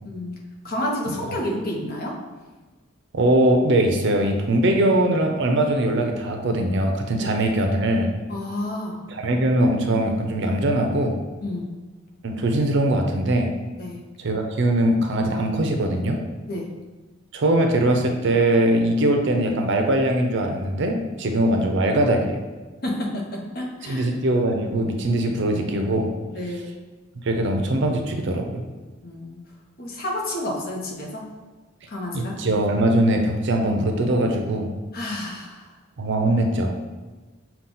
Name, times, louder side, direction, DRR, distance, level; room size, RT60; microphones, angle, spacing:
voice 1, 0.6-2.2 7.2-7.3 8.3-9.0 11.4-11.7 13.8-14.0 16.5-16.7 22.8-24.1 26.3-26.7 29.0-29.4 29.8-31.3 31.9-32.4 34.9-35.7, left 1 dB, 50° left, -1 dB, 0.9 m, -30 dB
voice 2, 3.1-8.1 9.1-11.2 12.2-13.5 14.2-16.2 17.3-22.4 23.8-26.1 27.2-28.6 32.1-34.7 36.0-36.7, right 1 dB, 60° right, 3 dB, 0.5 m, -21 dB
5.6 x 2.3 x 3.8 m, 1.3 s
head